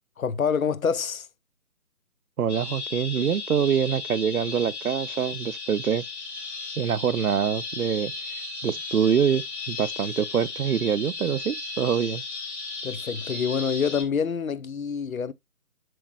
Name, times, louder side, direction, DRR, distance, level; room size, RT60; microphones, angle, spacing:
voice 1, 0.2-1.3 12.8-15.3, left 6 dB, 65° left, 0.7 m, -26 dB
voice 2, 2.4-6.0 6.8-8.1 8.6-12.2, right 8 dB, 75° right, 0.6 m, -25 dB
sound 1, 2.5-14.0, left 3 dB, 45° left, 2.6 m, -35 dB
7.7 x 6.3 x 2.3 m
figure-of-eight pair, 155°, 45 cm